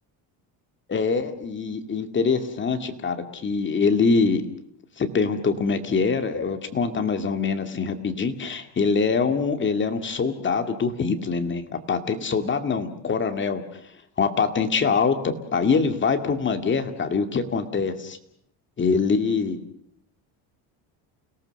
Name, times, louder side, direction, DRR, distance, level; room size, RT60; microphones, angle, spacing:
voice 1, 0.9-4.4 5.0-11.6 11.9-13.6 14.2-18.2 18.8-19.6, left 5 dB, 25° left, 7 dB, 2.2 m, -24 dB
29.5 x 18.0 x 6.6 m, 0.69 s
cardioid pair, 145°, 42 cm